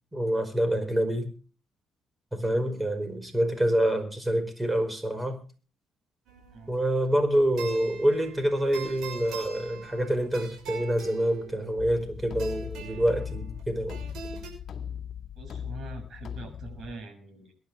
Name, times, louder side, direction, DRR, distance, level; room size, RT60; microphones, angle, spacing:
voice 1, 0.1-1.3 2.3-5.4 6.7-14.0, right 1 dB, 15° right, 5.1 m, -26 dB
sound 1, 6.3-14.5, right 6 dB, 85° right, 6.0 m, -43 dB
sound 2, 11.8-16.9, left 8 dB, 60° left, 1.8 m, -39 dB
voice 2, 15.3-17.5, right 3 dB, 60° right, 6.5 m, -43 dB
22.5 x 11.0 x 3.4 m
cardioid pair, 90°, 0 cm